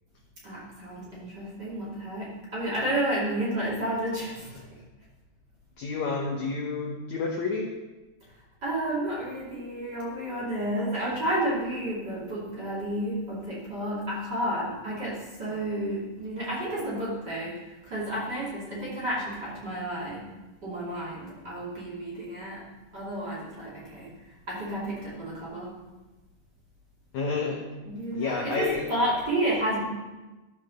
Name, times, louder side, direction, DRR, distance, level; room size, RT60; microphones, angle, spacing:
voice 1, 0.4-4.7 8.6-20.3 20.6-22.6 22.9-24.1 24.5-25.7 27.8-29.8, right 1 dB, 30° right, -7 dB, 2.8 m, -31 dB
voice 2, 5.8-7.7 27.1-27.6 28.1-28.8, left 4 dB, 70° left, -1 dB, 1.8 m, -29 dB
13.5 x 5.4 x 6.4 m, 1.1 s
omnidirectional pair, 4.4 m